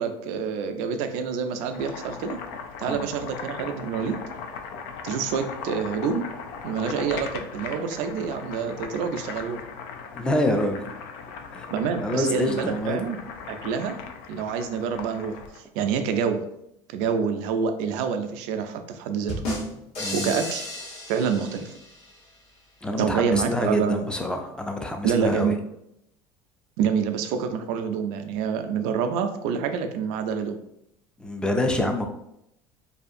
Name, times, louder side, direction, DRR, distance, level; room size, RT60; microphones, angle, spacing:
voice 1, 0.0-2.4 2.8-4.2 5.0-6.3 6.6-9.6 11.7-13.2 13.5-14.0 14.3-16.4 16.9-19.3 20.1-20.7 21.1-21.7 23.0-24.1 25.0-25.6 26.8-30.6, right 6 dB, 75° right, 7 dB, 0.4 m, -27 dB
Boiling, 1.5-15.6, left 5 dB, 85° left, 0.4 m, -38 dB
voice 2, 10.1-10.9 11.5-11.7 12.0-13.0 20.0-20.4 22.8-25.5 31.2-32.1, left 1 dB, 5° left, 4 dB, 0.4 m, -26 dB
sound 1, 19.3-22.1, left 1 dB, 55° left, 0.9 m, -33 dB
2.7 x 2.4 x 2.5 m, 0.78 s
supercardioid pair, 105°, 12 cm